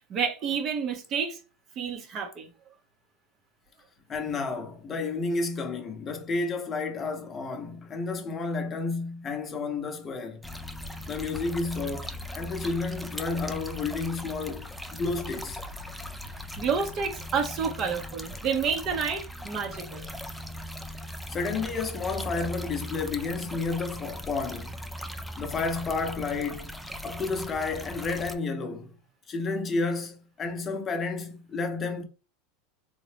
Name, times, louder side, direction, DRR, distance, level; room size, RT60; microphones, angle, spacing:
voice 1, 0.1-1.4 1.8-2.5 16.6-20.1, right 6 dB, 40° right, 0.7 m, -29 dB
voice 2, 4.1-10.4 11.1-15.6 21.3-24.8 25.4-26.7 27.0-28.9 29.3-32.0, left 3 dB, 25° left, 0.7 m, -31 dB
sound 1, 10.4-28.3, equal, ahead, 0.3 m, -39 dB
3.8 x 2.2 x 3.2 m
supercardioid pair, 130°, 0 cm